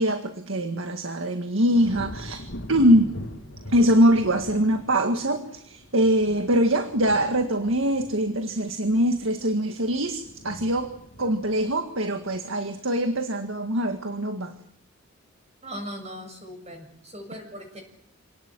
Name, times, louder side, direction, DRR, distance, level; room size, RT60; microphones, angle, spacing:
voice 1, 0.0-3.1 3.7-10.9 11.2-14.5, equal, 70° right, 6 dB, 1.9 m, -23 dB
sound 1, 1.7-13.0 13.4-13.9, left 1 dB, 65° left, 2.5 m, -42 dB
voice 2, 15.6-17.8, equal, 30° right, 4 dB, 6.9 m, -39 dB
27.5 x 18.5 x 9.1 m, 0.74 s
head